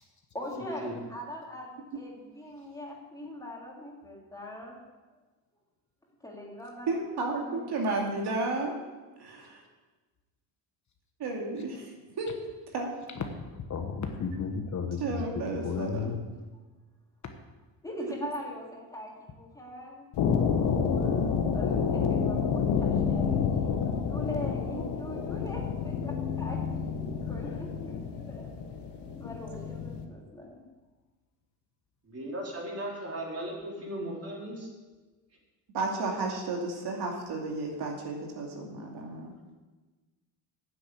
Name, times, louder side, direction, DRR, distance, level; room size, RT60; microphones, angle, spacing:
voice 1, 0.3-4.8 6.2-6.9 7.4-7.6 17.8-20.1 21.5-28.5 29.1-30.6, left 1 dB, 10° left, -3 dB, 3.3 m, -41 dB
voice 2, 6.9-8.8 9.2-9.6 11.2-12.9 15.0-16.1 18.0-18.1 35.7-39.3, right 3 dB, 60° right, 0 dB, 2.6 m, -33 dB
voice 3, 13.3-16.2 20.6-21.4 23.2-23.6 27.3-27.5, left 5 dB, 40° left, 5 dB, 1.3 m, -34 dB
sound 1, 20.1-30.0, left 6 dB, 60° left, 1.5 m, -29 dB
voice 4, 32.1-34.7, right 1 dB, 30° right, -3 dB, 4.2 m, -37 dB
9.9 x 7.8 x 8.5 m, 1.2 s
cardioid pair, 100°, 45 cm